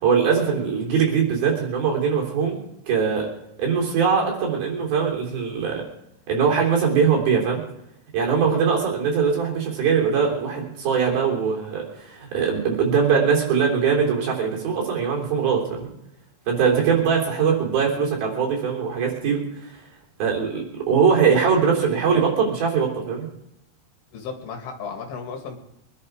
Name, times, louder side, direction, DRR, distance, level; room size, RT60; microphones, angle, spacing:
voice 1, 0.0-2.6 2.9-3.3 3.6-5.9 6.3-7.6 8.1-15.9 16.5-19.4 20.2-23.3, right 6 dB, 60° right, -1 dB, 5.3 m, -21 dB
voice 2, 24.1-25.6, left 5 dB, 70° left, 4 dB, 3.8 m, -34 dB
23.5 x 11.0 x 4.8 m, 0.82 s
omnidirectional pair, 4.8 m